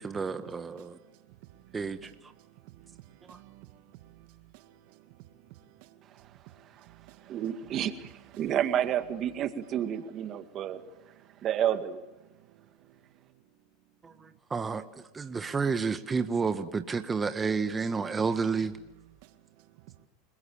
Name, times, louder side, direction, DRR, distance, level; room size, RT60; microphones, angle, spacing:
voice 1, 0.0-1.0 1.7-2.1 14.0-14.1 14.5-18.7, right 5 dB, 20° right, 1.5 m, -30 dB
voice 2, 0.5-8.9 9.6-11.3 12.2-13.0 19.2-19.9, right 15 dB, 65° right, 2.1 m, -56 dB
voice 3, 7.3-7.9 8.4-10.8 11.4-12.0, right 10 dB, 45° right, 2.0 m, -29 dB
29.0 x 22.0 x 7.2 m
hypercardioid pair, 105°, 0 cm